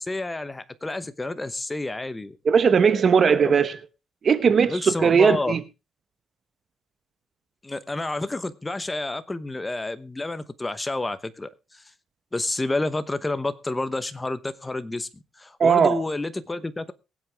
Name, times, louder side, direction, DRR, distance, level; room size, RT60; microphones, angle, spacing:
voice 1, 0.0-2.4 3.4-3.5 4.4-5.6 7.6-11.8 12.3-16.9, left 2 dB, 15° left, 0.9 m, -29 dB
voice 2, 2.5-3.8 4.2-5.6 15.6-16.0, right 6 dB, 40° right, 0.9 m, -18 dB
22.5 x 7.9 x 3.4 m
cardioid pair, 135°, 0 cm